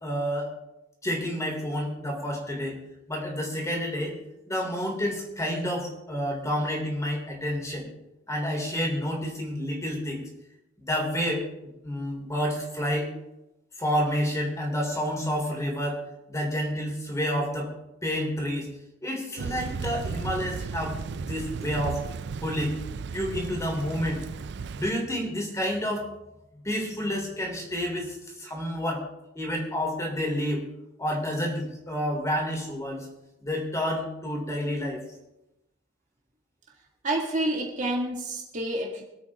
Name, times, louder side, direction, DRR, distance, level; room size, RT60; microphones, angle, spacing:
voice 1, 0.0-0.5 1.0-2.8 3.1-4.2 4.5-7.9 8.3-10.2 10.8-11.5 11.8-13.1 13.8-16.0 16.3-17.7 18.0-18.7 19.0-22.0 22.4-22.8 23.1-24.2 24.8-26.1 26.6-29.1 29.4-30.7 31.0-33.1 33.4-35.0, equal, 15° left, 0 dB, 3.6 m, -29 dB
Thunder / Rain, 19.4-24.9, right 5 dB, 60° right, 0.4 m, -35 dB
voice 2, 37.0-39.0, right 1 dB, 40° right, -2 dB, 2.2 m, -28 dB
25.0 x 8.5 x 3.7 m, 0.91 s
head